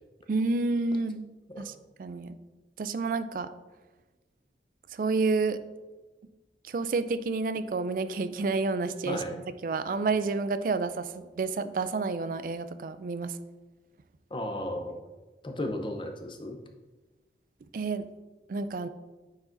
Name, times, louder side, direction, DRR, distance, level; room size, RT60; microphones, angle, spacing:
voice 1, 0.3-1.2 1.6-1.7 2.0-2.4 2.8-3.5 4.9-5.6 6.7-11.1 11.4-13.3 17.7-18.1 18.5-18.9, right 3 dB, 50° right, 12 dB, 0.3 m, -29 dB
voice 2, 14.3-14.9 15.4-16.6, left 1 dB, 30° left, 4 dB, 0.6 m, -34 dB
9.3 x 4.8 x 2.6 m, 1.2 s
head